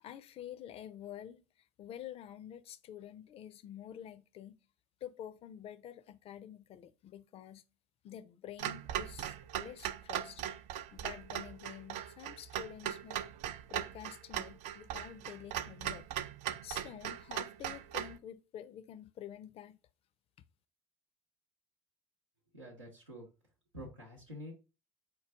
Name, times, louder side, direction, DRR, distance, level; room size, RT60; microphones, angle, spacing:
voice 1, 0.0-4.6 5.0-7.6 8.0-10.4 10.9-13.2 13.7-16.1 16.6-19.8, left 10 dB, 40° left, 0.4 m, -48 dB
Clock, 8.6-18.2, right 11 dB, 55° right, 0.4 m, -39 dB
voice 2, 22.5-23.3 23.7-24.5, equal, 90° right, 0.8 m, -47 dB
4.6 x 2.2 x 3.4 m
figure-of-eight pair, 60°, 15 cm